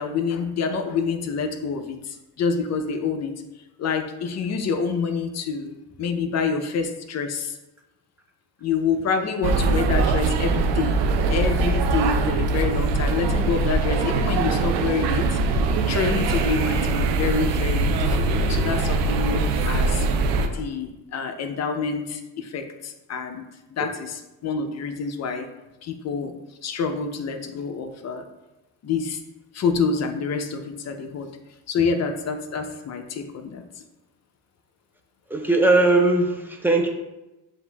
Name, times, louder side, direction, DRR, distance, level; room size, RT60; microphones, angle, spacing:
voice 1, 0.0-3.3 3.8-7.6 8.6-11.0 11.3-15.4 15.9-20.1 20.4-25.5 25.8-26.3 26.6-28.3 28.8-29.2 29.5-31.3 31.7-33.6, left 5 dB, 40° left, 6 dB, 0.5 m, -27 dB
sound 1, 9.4-20.5, right 3 dB, 80° right, 0.6 m, -22 dB
voice 2, 35.3-36.9, right 2 dB, 5° right, 2 dB, 0.5 m, -19 dB
7.6 x 2.5 x 2.3 m, 1.0 s
cardioid pair, 100°, 42 cm